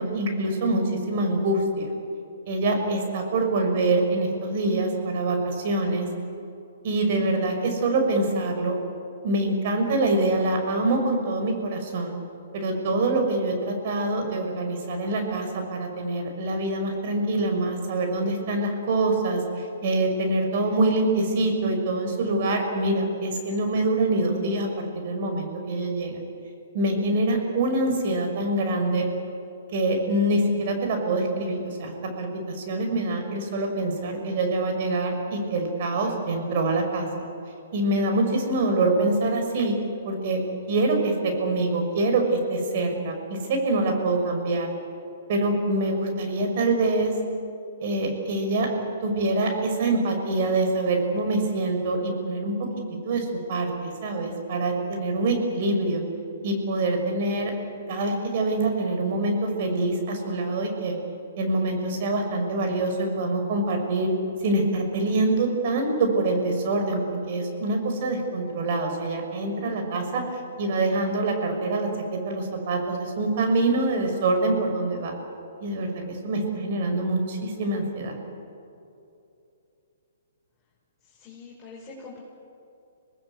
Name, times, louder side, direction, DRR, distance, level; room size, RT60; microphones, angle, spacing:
voice 1, 0.0-1.9 2.5-6.1 6.8-8.7 9.2-12.2 12.5-26.2 26.7-29.1 29.7-31.9 32.2-37.3 37.7-39.7 40.0-40.4 40.7-44.7 45.3-47.1 47.8-48.7 49.0-52.5 53.0-56.0 56.4-57.5 57.9-60.9 61.4-64.1 64.4-70.2 70.6-75.1 75.6-78.2, right 2 dB, 50° right, 3 dB, 5.8 m, -25 dB
voice 2, 81.1-82.2, left 4 dB, 15° left, -7 dB, 5.3 m, -44 dB
26.0 x 19.5 x 8.3 m, 2.7 s
hypercardioid pair, 135°, 0 cm